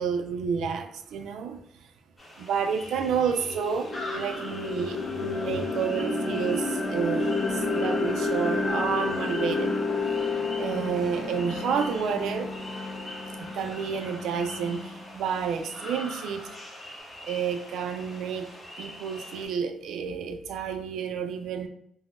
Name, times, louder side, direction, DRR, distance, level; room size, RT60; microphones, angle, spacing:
voice 1, 0.0-1.6 2.4-7.3 7.5-9.7 10.6-12.5 13.4-14.8 15.1-16.5 17.2-18.5 18.8-21.7, right 6 dB, 80° right, 7 dB, 0.3 m, -30 dB
sound 1, 2.2-19.5, left 1 dB, 25° left, 1.2 m, -43 dB
sound 2, 2.6-2.7 3.1-15.1, left 3 dB, 40° left, 0.9 m, -30 dB
3.7 x 2.0 x 2.4 m, 0.69 s
cardioid pair, 90°, 0 cm